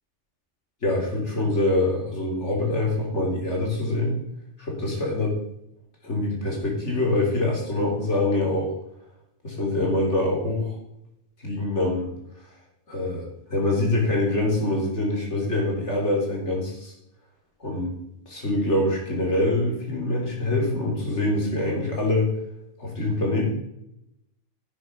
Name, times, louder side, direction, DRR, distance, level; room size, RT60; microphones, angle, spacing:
voice 1, 0.8-4.2 4.6-5.4 6.0-8.8 9.4-10.8 11.4-12.2 12.9-16.9 17.6-18.0 18.3-22.3 22.8-23.5, left 2 dB, 80° left, -1 dB, 3.9 m, -25 dB
11.0 x 8.5 x 5.4 m, 0.80 s
omnidirectional pair, 1.2 m